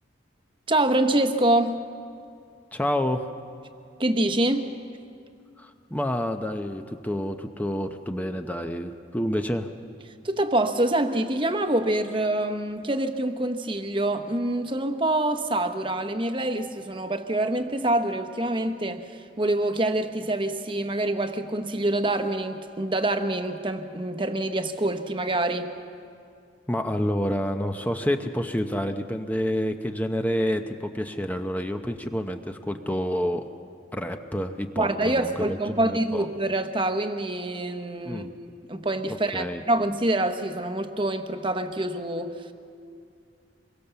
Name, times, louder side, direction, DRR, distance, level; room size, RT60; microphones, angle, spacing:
voice 1, 0.7-1.8 4.0-4.7 10.2-25.7 34.8-38.3 38.7-42.5, right 1 dB, 25° right, 8 dB, 1.1 m, -26 dB
voice 2, 2.7-3.3 5.6-9.7 26.7-33.4 33.9-36.3 38.0-38.3 39.1-39.6, equal, 10° left, 6 dB, 0.7 m, -28 dB
25.5 x 23.0 x 6.9 m, 2.4 s
head